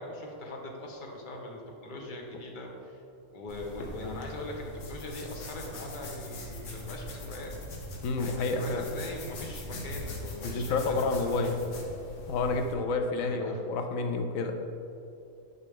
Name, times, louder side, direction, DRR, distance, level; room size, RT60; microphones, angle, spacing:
voice 1, 0.0-3.0 3.3-7.5 8.2-11.6 13.2-13.6, left 2 dB, 45° left, 1 dB, 0.9 m, -41 dB
sound 1, 3.5-12.7, equal, 70° left, 1.3 m, -41 dB
voice 2, 8.0-8.8 10.4-11.5 12.3-14.5, left 3 dB, 85° left, 5 dB, 1.0 m, -29 dB
6.7 x 5.1 x 3.5 m, 2.6 s
omnidirectional pair, 1.4 m